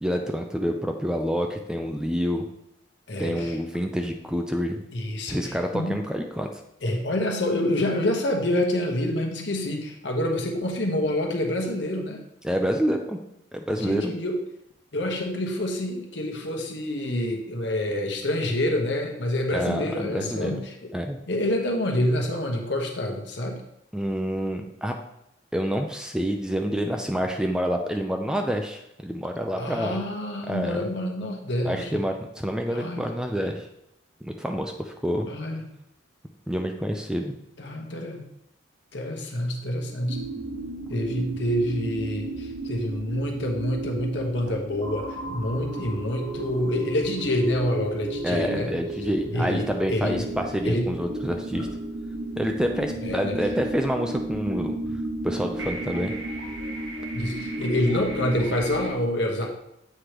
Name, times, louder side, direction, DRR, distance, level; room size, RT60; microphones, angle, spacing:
voice 1, 0.0-2.4 3.2-4.8 5.3-6.5 12.4-13.2 13.5-14.1 19.5-20.6 20.9-21.2 23.9-24.9 25.5-30.0 30.5-30.9 31.6-33.7 34.2-35.3 36.5-37.3 48.2-51.7 52.4-54.8 55.2-56.1, equal, 5° right, 3 dB, 0.4 m, -27 dB
voice 2, 3.1-3.6 4.9-6.0 6.8-12.2 13.8-14.4 14.9-20.9 21.3-23.6 29.6-32.0 32.7-33.0 35.2-35.6 37.6-38.2 38.9-40.2 40.9-48.7 49.3-50.3 50.6-50.9 51.5-51.7 53.0-53.4 57.1-59.5, left 1 dB, 65° left, 2 dB, 1.1 m, -27 dB
sound 1, 40.1-58.9, right 1 dB, 90° right, 1.2 m, -33 dB
7.8 x 4.9 x 3.0 m, 0.82 s
head